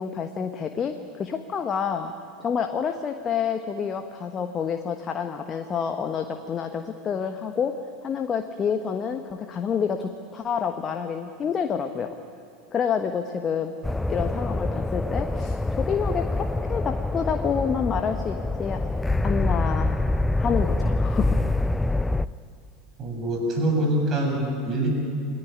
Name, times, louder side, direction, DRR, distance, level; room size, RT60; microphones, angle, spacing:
voice 1, 0.0-2.1 2.4-7.7 8.0-12.1 12.7-13.7 14.1-18.8 19.2-20.0 20.4-21.4, left 7 dB, 30° left, 6 dB, 1.3 m, -28 dB
Explosion Simulation, 13.8-22.3, left 2 dB, 10° left, 0.6 m, -25 dB
voice 2, 23.0-24.9, right 1 dB, 35° right, 2 dB, 7.6 m, -24 dB
28.5 x 19.5 x 9.6 m, 2.4 s
figure-of-eight pair, 80°, 0 cm